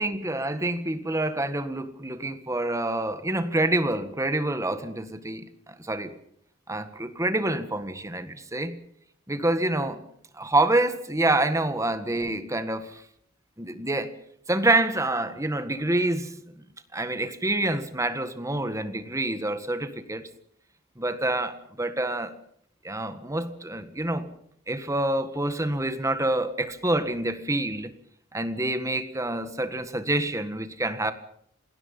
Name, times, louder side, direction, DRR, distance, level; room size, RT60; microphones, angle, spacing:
voice 1, 0.0-6.1 6.7-8.8 9.3-10.0 10.3-13.0 13.6-14.1 14.5-16.4 16.9-20.3 21.0-22.3 22.8-24.3 24.7-27.9 28.3-31.1, right 2 dB, 15° right, 10 dB, 1.7 m, -27 dB
28.0 x 19.5 x 5.6 m, 0.68 s
head